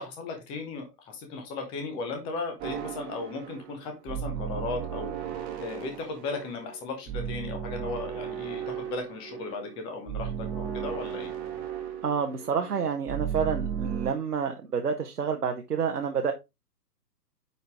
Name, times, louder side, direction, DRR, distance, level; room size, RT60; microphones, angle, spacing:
voice 1, 0.0-5.1 5.6-11.3, left 3 dB, 10° left, 5 dB, 0.8 m, -36 dB
sound 1, 2.6-14.1, right 8 dB, 15° right, 1.4 m, -35 dB
voice 2, 12.0-16.3, right 6 dB, 65° right, 4 dB, 1.2 m, -29 dB
9.4 x 4.0 x 3.6 m, 0.23 s
figure-of-eight pair, 125°, 49 cm